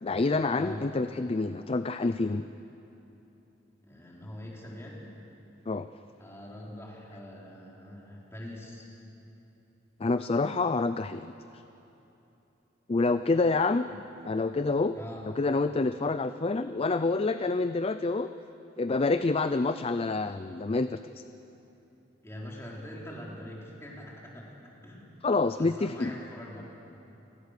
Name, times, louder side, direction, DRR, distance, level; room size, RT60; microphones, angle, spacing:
voice 1, 0.0-2.4 5.7-5.9 10.0-11.3 12.9-13.9 14.3-15.0 15.4-18.3 18.8-21.2 25.2-26.1, left 3 dB, 30° left, 11 dB, 0.5 m, -27 dB
voice 2, 0.5-0.9 3.8-5.1 6.2-8.9 13.9-14.0 14.9-15.2 22.2-25.2 25.6-26.6, left 1 dB, 15° left, -4 dB, 4.1 m, -43 dB
29.5 x 18.0 x 6.7 m, 2.9 s
head